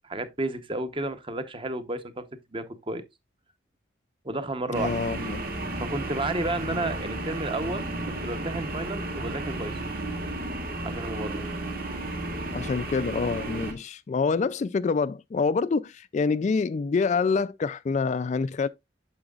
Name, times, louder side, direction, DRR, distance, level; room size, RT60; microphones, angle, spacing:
voice 1, 0.0-2.2 2.5-3.0 4.2-4.9 5.8-9.7 10.8-11.4, right 2 dB, 30° right, 0.9 m, -32 dB
voice 2, 4.7-5.4 12.5-18.7, left 4 dB, 40° left, 0.3 m, -26 dB
sound 1, 4.7-13.7, right 2 dB, 55° right, 1.9 m, -33 dB
8.8 x 7.0 x 2.4 m
head